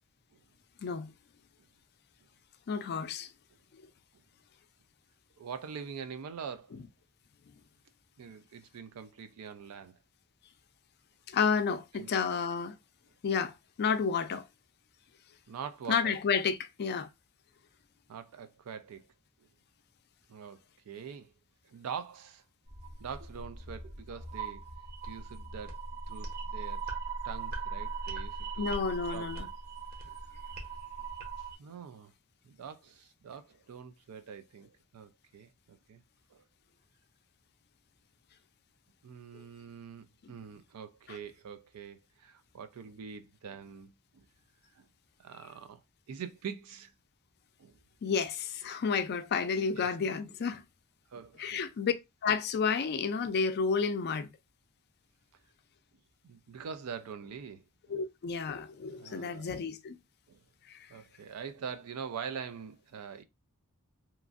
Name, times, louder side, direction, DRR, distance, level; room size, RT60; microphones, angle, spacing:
voice 1, 2.7-3.3 11.3-12.7 13.2-13.5 13.8-14.4 15.9-17.1 28.6-29.5 41.1-41.2 48.0-50.6 51.4-51.9 52.2-54.3 57.9-60.0 60.7-60.8, left 5 dB, 50° left, 0.4 m, -31 dB
voice 2, 5.4-6.8 8.2-10.0 11.9-12.1 15.5-16.2 18.1-19.1 20.3-21.3 21.6-22.4 23.0-24.7 25.1-25.8 26.1-26.9 27.2-28.7 29.1-29.5 31.6-32.1 32.4-36.0 36.3-36.4 39.0-44.3 44.7-44.9 45.2-46.9 47.6-47.8 49.7-49.9 51.1-51.7 56.2-57.6 58.9-59.6 60.3-60.4 60.9-63.2, right 7 dB, 85° right, 0.4 m, -44 dB
sound 1, 22.7-31.5, right 4 dB, 45° right, 0.8 m, -40 dB
2.9 x 2.5 x 2.4 m
head